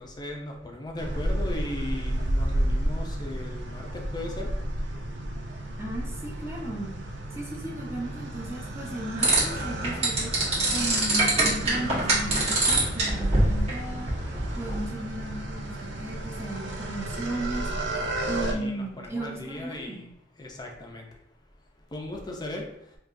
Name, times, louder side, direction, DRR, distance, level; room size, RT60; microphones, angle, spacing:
voice 1, 0.0-4.5 18.5-20.0 20.4-21.1 21.9-22.7, left 1 dB, 25° left, 1 dB, 0.5 m, -37 dB
sound 1, 1.0-18.5, right 1 dB, 90° right, 0.6 m, -32 dB
voice 2, 5.8-6.9 7.3-14.1 14.6-17.7 18.3-20.0, right 1 dB, 15° right, -2 dB, 0.7 m, -35 dB
sound 2, 9.2-14.8, right 2 dB, 35° right, 1.2 m, -25 dB
4.7 x 2.4 x 2.5 m, 0.75 s
head